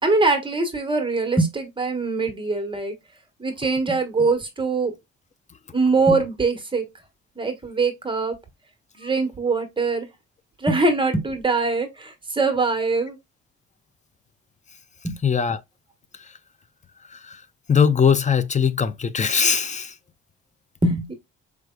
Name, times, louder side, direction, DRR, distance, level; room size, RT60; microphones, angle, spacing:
voice 1, 0.0-2.9 3.4-4.9 5.7-6.8 7.4-8.4 8.9-10.1 10.6-13.2 15.0-15.2 20.8-21.1, right 3 dB, 15° right, 1.3 m, -22 dB
voice 2, 15.2-15.6 16.1-16.4 17.1-17.4 17.7-20.0, left 6 dB, 25° left, 0.5 m, -21 dB
4.8 x 3.2 x 2.3 m
cardioid pair, 90°, 30 cm